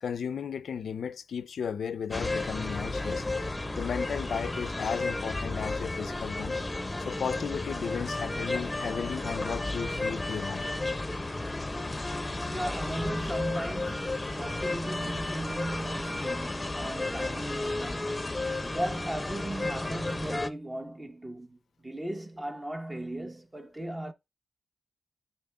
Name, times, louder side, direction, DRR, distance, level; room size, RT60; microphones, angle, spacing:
voice 1, 0.0-3.2 3.8-6.5 7.0-10.7, left 7 dB, 75° left, 0.4 m, -35 dB
sound 1, 2.1-20.5, left 2 dB, 20° left, 0.7 m, -33 dB
voice 2, 12.5-18.3 18.7-21.6 21.8-24.1, right 1 dB, 20° right, 0.9 m, -37 dB
11.5 x 4.4 x 2.3 m
cardioid pair, 75°, 0 cm